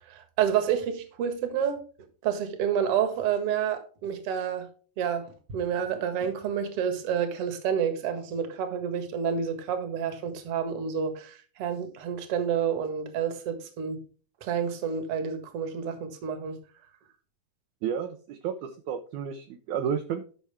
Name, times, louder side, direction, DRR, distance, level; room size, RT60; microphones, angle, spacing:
voice 1, 0.1-1.8 2.2-4.7 5.0-14.0 14.4-16.6, right 8 dB, 50° right, 2.0 m, -29 dB
voice 2, 17.8-20.2, right 8 dB, 70° right, 2.0 m, -31 dB
12.0 x 6.0 x 3.5 m
omnidirectional pair, 4.1 m